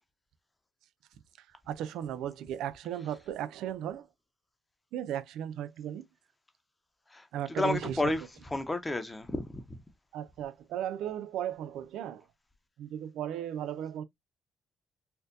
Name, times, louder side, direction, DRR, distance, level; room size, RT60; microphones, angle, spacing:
voice 1, 1.7-4.1 4.9-6.0 7.3-8.1 10.1-12.2 12.8-14.0, right 10 dB, 85° right, 0.4 m, -36 dB
voice 2, 7.1-9.8, left 2 dB, 15° left, 0.8 m, -32 dB
4.3 x 2.4 x 2.6 m
cardioid pair, 90°, 0 cm